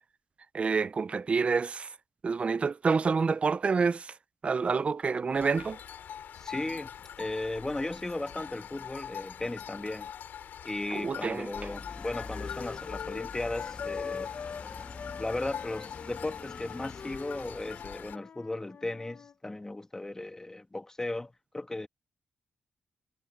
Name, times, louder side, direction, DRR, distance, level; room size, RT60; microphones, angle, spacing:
voice 1, 0.5-1.9 2.2-4.1 4.4-5.8 10.9-11.5, right 5 dB, 40° right, 0.5 m, -28 dB
sound 1, 5.3-18.2, left 9 dB, 75° left, 3.6 m, -44 dB
voice 2, 6.4-10.1 10.6-14.3 15.2-21.9, left 2 dB, 15° left, 1.7 m, -36 dB
sound 2, 10.8-14.7 14.9-19.3, left 6 dB, 55° left, 1.0 m, -43 dB
sound 3, 11.5-17.8, left 4 dB, 35° left, 1.9 m, -45 dB
cardioid pair, 85°, 3 cm